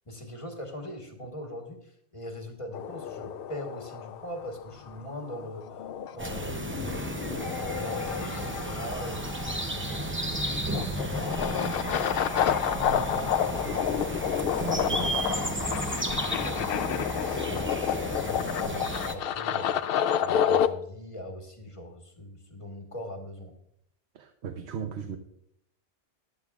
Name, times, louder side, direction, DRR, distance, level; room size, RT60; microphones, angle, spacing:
voice 1, 0.0-5.8 6.1-11.5 12.4-17.7 18.1-19.8 20.2-23.5, left 1 dB, 30° left, 3 dB, 1.4 m, -41 dB
sound 1, 2.7-20.7, left 9 dB, 65° left, 0.7 m, -30 dB
sound 2, 6.2-19.2, right 1 dB, 15° right, 0.5 m, -33 dB
voice 2, 14.6-15.0 24.1-25.2, right 7 dB, 75° right, 6 dB, 1.0 m, -37 dB
14.5 x 10.5 x 2.4 m, 0.73 s
omnidirectional pair, 1.1 m